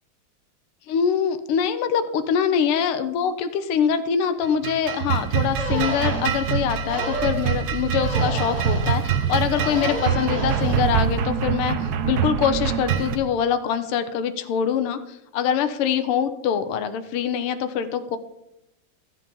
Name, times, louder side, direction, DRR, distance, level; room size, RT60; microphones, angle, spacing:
voice 1, 0.9-11.8 12.0-18.2, left 7 dB, 85° left, 10 dB, 1.7 m, -24 dB
sound 1, 4.4-13.2, right 8 dB, 60° right, 1.1 m, -24 dB
sound 2, 4.9-5.0 5.6-6.2 6.9-7.4 8.0-8.9 9.6-10.8, equal, 35° right, 5.2 m, -31 dB
13.5 x 7.4 x 5.4 m, 0.87 s
omnidirectional pair, 2.4 m